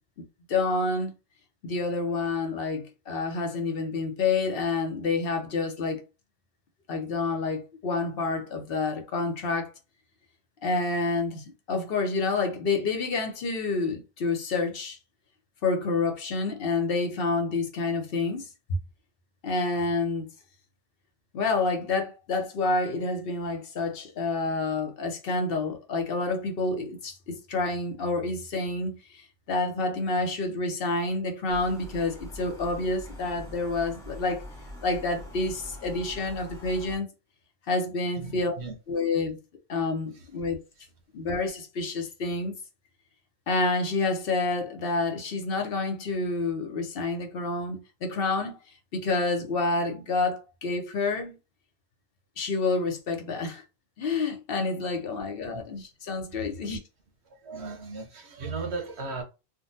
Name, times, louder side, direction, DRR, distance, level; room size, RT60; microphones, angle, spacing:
voice 1, 0.2-1.1 1.6-6.0 6.9-9.7 10.6-15.0 15.6-18.8 19.4-20.3 21.3-34.4 34.8-37.1 37.7-38.5 38.9-39.4 39.7-40.6 41.1-42.5 43.5-48.6 48.9-51.4 52.4-53.6 54.0-56.8, left 3 dB, 65° left, 0.9 m, -28 dB
sound 1, 31.5-37.0, left 1 dB, 5° left, 0.7 m, -43 dB
voice 2, 38.2-38.7 40.1-40.3 40.8-40.9 55.5-55.6 56.4-56.8 57.2-59.2, right 4 dB, 80° right, 1.1 m, -37 dB
3.6 x 2.2 x 2.6 m
omnidirectional pair, 1.1 m